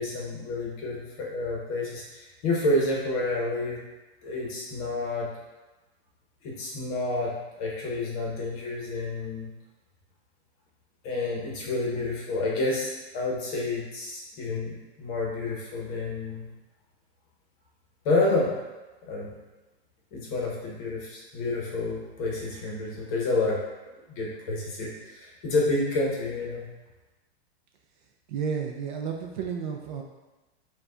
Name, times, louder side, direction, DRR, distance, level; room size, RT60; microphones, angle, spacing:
voice 1, 0.0-3.8 4.2-5.3 6.4-9.5 11.0-16.5 18.0-18.5 19.0-19.3 20.1-23.6 23.9-26.6, left 2 dB, 35° left, -3 dB, 0.9 m, -29 dB
voice 2, 28.3-30.0, right 7 dB, 45° right, 2 dB, 0.4 m, -32 dB
4.6 x 2.3 x 3.7 m, 1.1 s
supercardioid pair, 165°, 33 cm